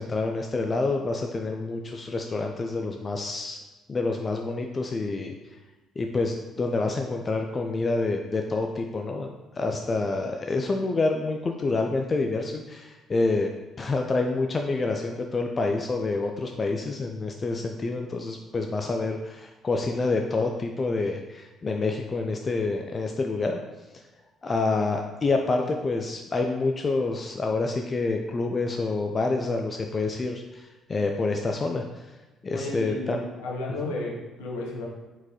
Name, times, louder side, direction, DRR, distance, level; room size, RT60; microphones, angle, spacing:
voice 1, 0.0-3.6 3.9-5.3 6.0-9.3 9.6-13.5 13.8-23.6 24.4-31.8 32.4-33.2 33.8-33.9, left 3 dB, 35° left, 3 dB, 0.4 m, -27 dB
voice 2, 32.5-34.8, left 2 dB, 70° left, -3 dB, 0.9 m, -33 dB
4.3 x 3.8 x 2.9 m, 1.2 s
figure-of-eight pair, 45°, 0 cm